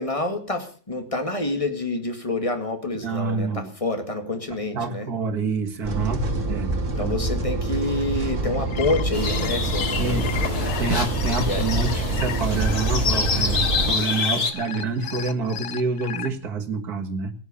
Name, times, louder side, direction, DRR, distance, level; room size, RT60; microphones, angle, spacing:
voice 1, 0.0-5.1 7.0-10.7 11.4-11.6, left 2 dB, 20° left, 6 dB, 2.2 m, -28 dB
voice 2, 2.9-3.7 4.5-7.1 9.9-10.4 10.8-17.3, right 4 dB, 65° right, 5 dB, 2.3 m, -27 dB
sound 1, 5.8-13.9, right 2 dB, 45° right, 2.3 m, -26 dB
sound 2, 8.5-16.3, left 11 dB, 90° left, 1.5 m, -35 dB
sound 3, 9.1-14.5, left 4 dB, 65° left, 2.5 m, -27 dB
17.5 x 10.0 x 6.9 m, 0.42 s
omnidirectional pair, 1.8 m